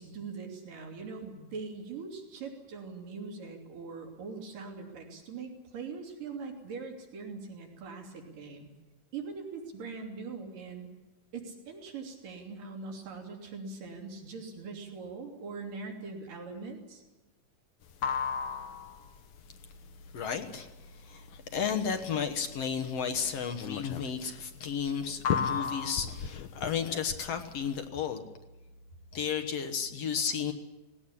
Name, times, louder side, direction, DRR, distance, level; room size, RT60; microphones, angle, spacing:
voice 1, 0.0-8.7 9.1-10.9 11.3-17.0, right 4 dB, 85° right, 2 dB, 4.6 m, -42 dB
sound 1, 17.8-27.9, left 7 dB, 90° left, 1.1 m, -35 dB
voice 2, 20.1-28.2 29.1-30.5, left 7 dB, 60° left, 6 dB, 2.1 m, -33 dB
19.0 x 18.0 x 10.0 m, 1.1 s
omnidirectional pair, 3.7 m